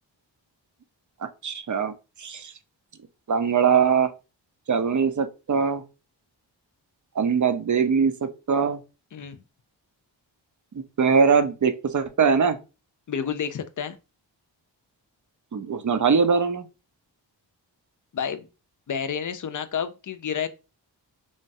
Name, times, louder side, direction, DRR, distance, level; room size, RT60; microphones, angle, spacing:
voice 1, 1.2-1.9 2.2-2.5 3.3-4.1 4.7-5.8 7.2-8.8 11.0-12.6 15.5-16.7, right 6 dB, 40° right, 0.5 m, -22 dB
voice 2, 9.1-9.4 13.1-14.0 18.1-18.5 18.9-20.5, left 7 dB, 45° left, 0.5 m, -30 dB
3.1 x 2.2 x 2.6 m
cardioid pair, 45°, 45 cm